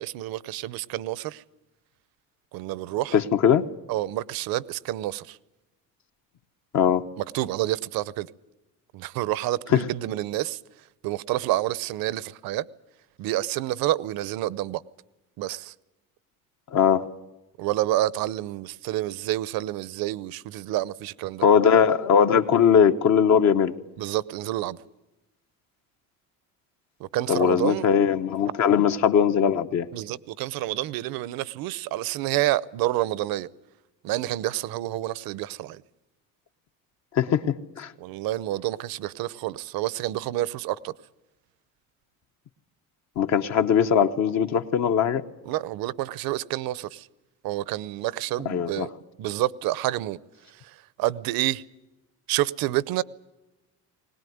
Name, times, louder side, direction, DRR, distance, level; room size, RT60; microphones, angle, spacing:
voice 1, 0.0-1.4 2.5-3.2 3.9-5.4 7.3-8.3 8.9-10.6 11.0-12.6 13.2-14.8 15.4-15.7 17.6-21.4 24.0-24.8 27.0-27.9 29.9-33.5 34.0-35.8 38.0-40.9 45.4-47.1 47.4-48.9 49.2-50.2 50.5-51.6 52.3-53.0, right 15 dB, 70° right, 0.8 m, -28 dB
voice 2, 3.1-3.6 6.7-7.0 9.7-9.8 16.7-17.1 21.4-23.7 27.3-29.9 37.1-37.9 43.2-45.2 48.4-48.9, left 7 dB, 50° left, 1.1 m, -20 dB
21.0 x 19.0 x 9.4 m
cardioid pair, 150°, 37 cm